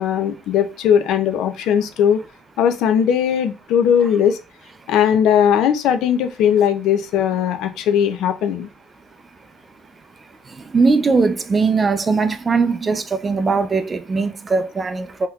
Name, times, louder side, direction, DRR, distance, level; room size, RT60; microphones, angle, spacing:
voice 1, 0.0-2.2 2.6-4.4 4.9-8.7, left 8 dB, 65° left, 0.5 m, -18 dB
voice 2, 10.5-15.3, right 4 dB, 25° right, 0.4 m, -20 dB
3.5 x 2.8 x 2.3 m
cardioid pair, 115°, 0 cm